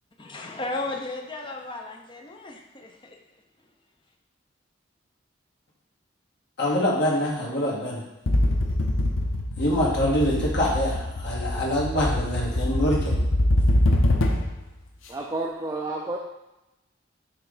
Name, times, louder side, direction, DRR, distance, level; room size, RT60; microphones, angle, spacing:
voice 1, 0.2-3.2, left 2 dB, 25° left, 1 dB, 0.7 m, -35 dB
voice 2, 6.6-8.0 9.6-13.1, left 1 dB, 60° left, -5 dB, 1.8 m, -25 dB
sound 1, 8.3-14.6, left 1 dB, 90° left, 0.7 m, -24 dB
voice 3, 15.1-16.2, right 2 dB, 20° right, -2 dB, 0.5 m, -30 dB
6.0 x 3.3 x 4.9 m, 0.95 s
head